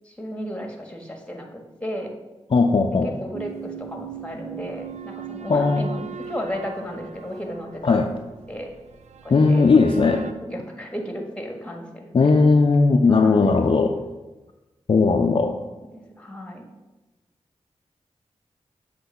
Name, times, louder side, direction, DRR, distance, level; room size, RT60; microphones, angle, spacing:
voice 1, 0.0-2.1 3.0-8.1 8.5-8.7 9.2-9.6 10.0-12.3 13.1-13.6 15.4-16.6, equal, 10° left, 2 dB, 1.5 m, -34 dB
voice 2, 2.5-3.1 5.5-5.9 7.8-8.1 9.3-10.2 12.1-14.0 14.9-15.6, left 4 dB, 50° left, 4 dB, 0.5 m, -17 dB
sound 1, 3.3-10.3, right 7 dB, 80° right, 0.4 m, -39 dB
7.8 x 3.1 x 5.6 m, 1.1 s
cardioid pair, 45°, 12 cm